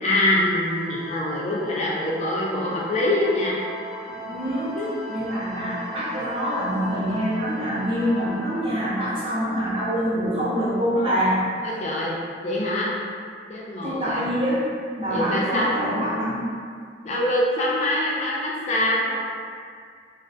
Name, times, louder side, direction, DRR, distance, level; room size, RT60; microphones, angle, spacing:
voice 1, 0.0-3.6 4.8-4.9 11.6-12.1 12.4-12.9 13.5-14.3 15.1-16.0 17.0-19.1, left 1 dB, 40° left, -5 dB, 0.3 m, -24 dB
sound 1, 0.5-10.9, equal, 75° left, 0.6 m, -38 dB
voice 2, 4.1-4.8 5.1-11.4 13.8-14.7 15.0-16.4, equal, 30° right, -8 dB, 0.5 m, -25 dB
2.3 x 2.1 x 2.7 m, 2.1 s
head